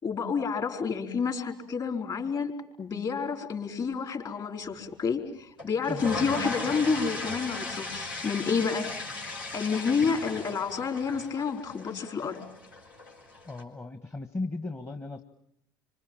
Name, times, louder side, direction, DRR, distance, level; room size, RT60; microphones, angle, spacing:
voice 1, 0.0-2.5 2.8-12.4, left 5 dB, 40° left, 4 dB, 4.7 m, -30 dB
sound 1, 5.6-13.6, left 2 dB, 85° left, 5.0 m, -37 dB
voice 2, 13.4-15.2, left 2 dB, 25° left, 7 dB, 1.5 m, -36 dB
26.5 x 26.0 x 7.4 m, 0.74 s
hypercardioid pair, 65°, 11 cm